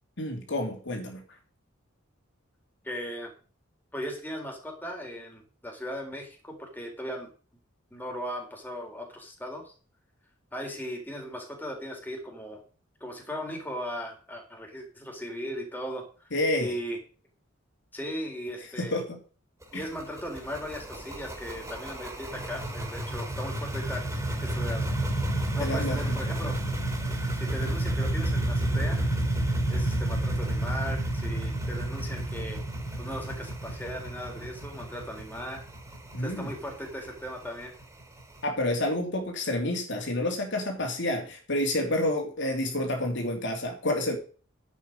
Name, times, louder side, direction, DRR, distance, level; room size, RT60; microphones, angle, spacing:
voice 1, 0.2-1.2 16.3-16.7 18.8-19.2 19.7-19.9 25.6-26.2 36.1-36.5 38.4-44.2, left 1 dB, 60° left, 3 dB, 3.2 m, -29 dB
voice 2, 2.8-3.3 3.9-7.3 7.9-9.7 10.5-12.6 13.0-16.0 16.6-17.0 17.9-19.0 19.7-24.1 24.4-25.0 25.5-26.6 27.3-29.0 29.7-32.6 33.0-35.6 36.2-37.7, equal, 10° left, 1 dB, 4.1 m, -37 dB
sound 1, 19.6-38.4, right 1 dB, 15° right, 4.0 m, -31 dB
11.0 x 8.5 x 5.1 m, 0.38 s
head